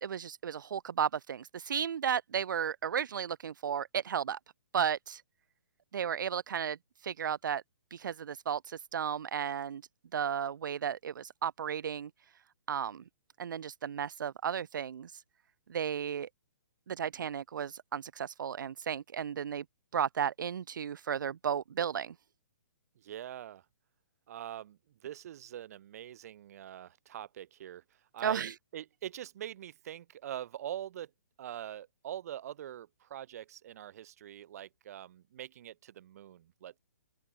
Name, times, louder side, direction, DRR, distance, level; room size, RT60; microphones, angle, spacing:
voice 1, 0.0-4.4 4.7-5.2 5.9-6.8 7.0-7.6 7.9-9.8 10.1-12.1 12.7-13.0 13.4-15.2 15.7-16.3 16.9-19.6 19.9-22.1 28.2-28.5, right 8 dB, 70° right, 0.7 m, -34 dB
voice 2, 23.0-23.6 24.3-31.1 31.4-36.8, right 11 dB, 50° right, 2.7 m, -44 dB
open air
hypercardioid pair, 155°, 11 cm